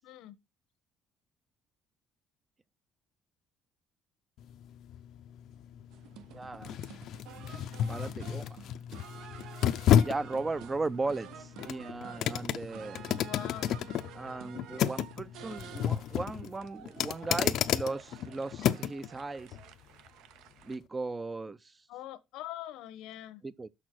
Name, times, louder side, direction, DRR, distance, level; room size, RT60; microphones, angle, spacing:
voice 1, 0.0-0.4 13.2-13.7 21.9-23.4, left 13 dB, 80° left, 1.0 m, -43 dB
sound 1, 4.4-19.1 19.5-19.6, left 10 dB, 55° left, 0.5 m, -32 dB
sound 2, 5.9-20.8, right 10 dB, 70° right, 0.7 m, -51 dB
voice 2, 6.3-6.8 7.8-8.6 10.0-13.0 14.1-19.5 20.6-21.7 23.4-23.7, right 3 dB, 15° right, 0.4 m, -37 dB
6.5 x 6.2 x 6.1 m
cardioid pair, 170°, 0 cm